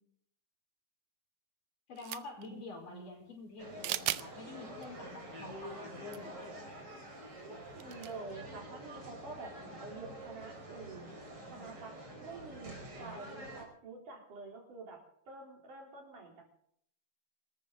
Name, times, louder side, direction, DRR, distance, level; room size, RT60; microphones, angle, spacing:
voice 1, 1.9-6.4, left 3 dB, 55° left, 2 dB, 6.2 m, -48 dB
sound 1, 2.0-2.5 3.8-4.3 4.8-4.9 6.0-6.2 6.4-6.5 7.8-8.2, right 15 dB, 80° right, 1.9 m, -36 dB
voice 2, 2.5-3.1 7.4-11.1 11.5-16.4, right 3 dB, 50° right, 0 dB, 5.1 m, -48 dB
sound 2, 3.6-13.6, right 1 dB, 25° right, 5.4 m, -47 dB
25.5 x 14.0 x 4.0 m, 0.68 s
omnidirectional pair, 4.6 m